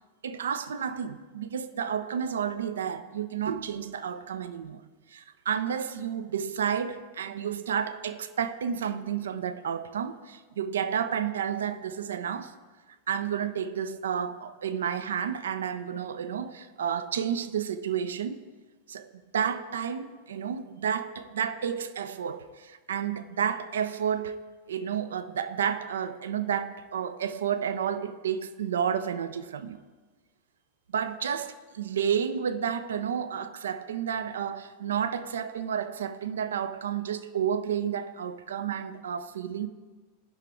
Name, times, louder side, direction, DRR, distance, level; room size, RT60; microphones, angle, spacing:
voice 1, 0.2-4.8 5.1-12.5 13.1-18.4 18.9-24.4 24.7-29.8 30.9-39.7, right 8 dB, 65° right, 0.5 m, -31 dB
16.5 x 5.8 x 3.5 m
figure-of-eight pair, 90°, 0 cm